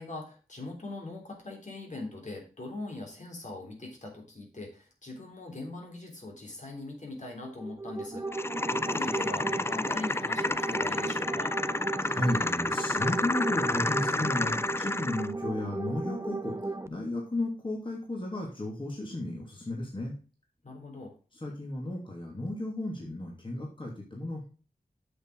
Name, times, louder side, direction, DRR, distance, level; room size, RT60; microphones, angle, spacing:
voice 1, 0.0-11.5 20.6-21.1, left 2 dB, 50° left, 0 dB, 3.5 m, -41 dB
sound 1, 7.4-16.9, right 2 dB, 20° right, 0.7 m, -36 dB
sound 2, 8.3-15.3, left 2 dB, 15° left, 0.4 m, -30 dB
voice 2, 12.0-20.1 21.4-24.5, left 1 dB, 30° left, -2 dB, 3.0 m, -34 dB
8.0 x 6.7 x 5.0 m, 0.36 s
wide cardioid pair, 70°, 15 cm